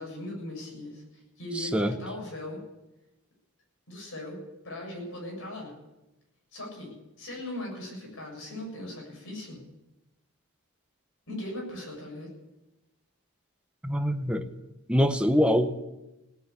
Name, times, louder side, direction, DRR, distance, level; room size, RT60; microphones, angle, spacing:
voice 1, 0.0-2.6 3.9-5.7 6.5-9.6 11.3-12.3, left 1 dB, 60° left, 0 dB, 7.2 m, -39 dB
voice 2, 1.6-1.9 13.8-14.5 14.9-15.7, equal, 5° right, 6 dB, 0.8 m, -24 dB
17.5 x 9.5 x 8.3 m, 0.98 s
head